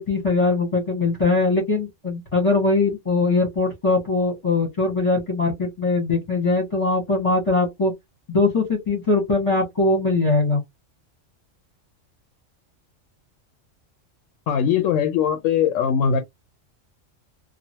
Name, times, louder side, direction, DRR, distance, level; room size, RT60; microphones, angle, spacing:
voice 1, 0.0-7.9 8.3-10.6, left 3 dB, 25° left, 1.2 m, -21 dB
voice 2, 14.5-16.2, left 8 dB, 80° left, 0.9 m, -20 dB
3.1 x 2.4 x 2.7 m
omnidirectional pair, 1.3 m